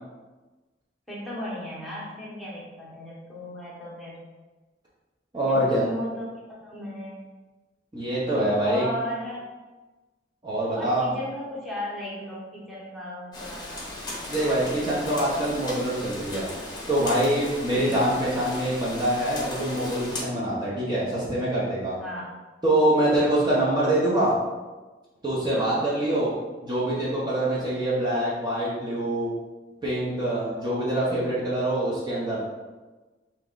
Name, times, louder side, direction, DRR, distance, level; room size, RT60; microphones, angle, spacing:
voice 1, 1.1-4.2 5.5-6.3 6.6-7.3 8.6-9.4 10.7-13.9 17.7-18.0 22.0-22.3 23.1-23.3 25.5-25.8, equal, ahead, -8 dB, 1.1 m, -36 dB
voice 2, 5.3-5.9 7.9-8.8 10.4-11.1 14.3-16.5 16.9-21.9 22.6-24.3 25.2-26.3 26.6-29.3 29.8-32.4, right 1 dB, 25° right, -8 dB, 0.9 m, -25 dB
Rain, 13.3-20.2, left 1 dB, 25° left, 0.9 m, -37 dB
3.6 x 3.0 x 3.8 m, 1.2 s
head